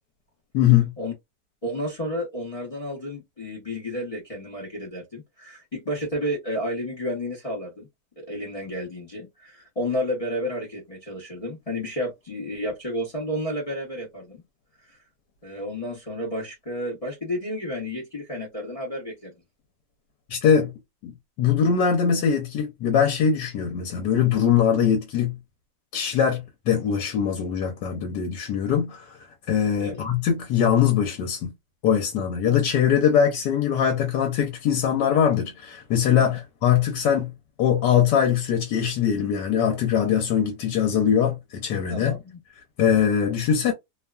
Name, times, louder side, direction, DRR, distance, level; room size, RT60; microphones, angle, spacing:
voice 1, 0.5-0.9 20.3-20.7 21.0-21.1 21.4-25.3 25.9-29.2 29.5-31.5 31.8-37.3 37.6-42.1 42.8-43.7, left 8 dB, 80° left, 1.2 m, -22 dB
voice 2, 1.6-7.9 8.2-14.4 14.9-15.0 15.4-19.3 29.8-30.0 41.9-42.4, equal, 40° left, 0.5 m, -31 dB
2.8 x 2.3 x 2.2 m
omnidirectional pair, 1.8 m